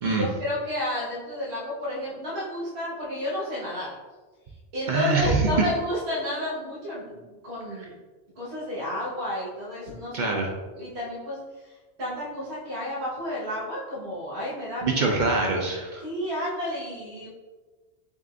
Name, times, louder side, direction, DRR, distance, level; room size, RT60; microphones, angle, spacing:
voice 1, 0.0-3.9 4.7-7.9 8.3-10.3 10.7-11.4 12.0-15.0 16.0-17.3, left 1 dB, 70° right, -7 dB, 1.6 m, -31 dB
voice 2, 4.9-5.5 10.1-10.5 14.8-16.0, right 3 dB, 50° right, 0 dB, 0.6 m, -24 dB
7.3 x 2.5 x 2.5 m, 1.3 s
omnidirectional pair, 1.1 m